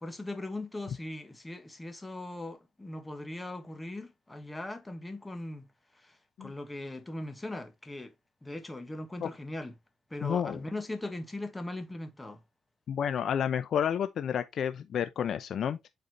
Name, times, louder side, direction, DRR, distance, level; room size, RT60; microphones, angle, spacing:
voice 1, 0.0-5.7 5.9-8.1 8.4-9.7 10.1-12.4, left 1 dB, 15° left, 1.4 m, -39 dB
voice 2, 10.2-10.6 12.9-15.9, left 8 dB, 60° left, 0.6 m, -30 dB
7.8 x 4.2 x 3.0 m
cardioid pair, 90°, 0 cm